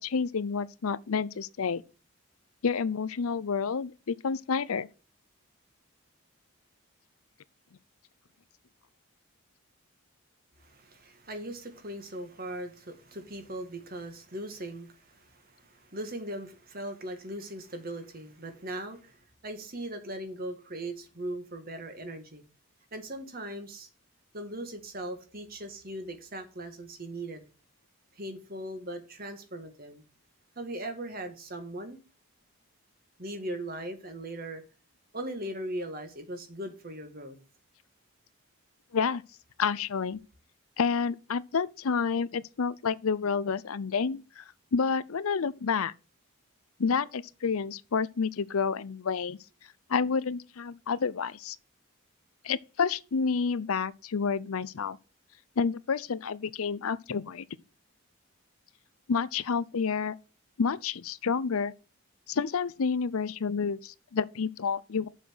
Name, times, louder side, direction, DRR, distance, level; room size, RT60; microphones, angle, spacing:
voice 1, 0.0-1.8 2.6-4.9 38.9-39.2 39.6-40.2 40.8-44.4 44.7-45.9 46.8-49.4 49.9-51.6 52.4-55.0 55.6-57.4 59.1-60.2 60.6-61.7 62.3-65.1, left 5 dB, 75° left, 0.5 m, -29 dB
voice 2, 10.6-22.4 22.9-23.9 24.3-27.4 28.1-30.0 30.6-32.0 33.2-34.6 35.1-37.4, right 1 dB, 40° right, 1.8 m, -39 dB
7.1 x 5.8 x 6.2 m
head